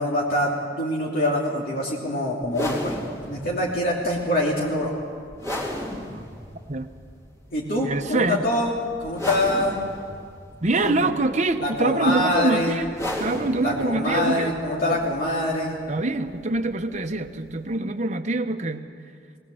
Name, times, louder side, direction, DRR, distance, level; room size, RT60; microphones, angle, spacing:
voice 1, 0.0-3.0 3.2-4.9 7.5-9.8 10.7-11.1 11.6-12.8 13.6-15.8, left 1 dB, 55° left, -4 dB, 3.1 m, -25 dB
sound 1, 2.4-17.8, left 1 dB, 15° left, 3.5 m, -36 dB
voice 2, 7.8-8.4 10.6-12.9 13.2-14.5 14.9-15.0 15.9-18.9, right 2 dB, 40° right, 7 dB, 1.0 m, -25 dB
19.5 x 19.0 x 7.8 m, 2.2 s
head